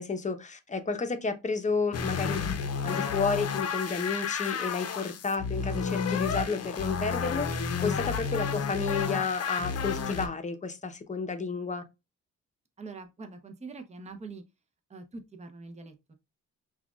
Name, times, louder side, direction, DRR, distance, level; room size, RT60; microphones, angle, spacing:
voice 1, 0.0-11.8, left 4 dB, 25° left, 0.8 m, -31 dB
sound 1, 1.9-10.3, left 6 dB, 55° left, 0.8 m, -31 dB
voice 2, 12.8-14.4 14.9-16.1, right 3 dB, 20° right, 0.8 m, -44 dB
5.8 x 2.5 x 2.4 m
cardioid pair, 90°, 30 cm